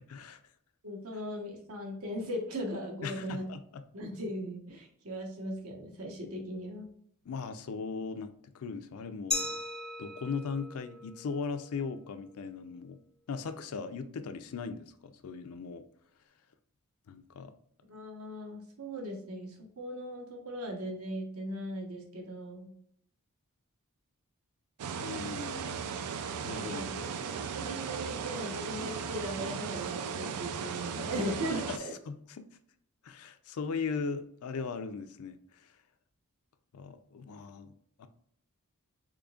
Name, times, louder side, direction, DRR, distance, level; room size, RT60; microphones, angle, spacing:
voice 1, 0.1-0.4 3.0-3.8 7.3-8.3 8.5-9.6 10.0-13.0 13.3-15.8 17.1-17.5 25.0-25.9 26.4-26.8 31.4-31.8 32.1-32.5 33.0-35.7 36.7-37.7 38.0-38.1, left 5 dB, 70° left, 10 dB, 0.4 m, -38 dB
voice 2, 0.8-3.4 3.9-6.9 17.9-22.7 26.6-27.0 27.5-31.9, equal, 70° right, 1 dB, 1.0 m, -38 dB
Glass, 9.3-12.0, left 3 dB, 5° left, 0.4 m, -38 dB
sound 1, 24.8-31.8, right 6 dB, 90° right, 0.4 m, -37 dB
3.8 x 3.4 x 2.3 m, 0.67 s
head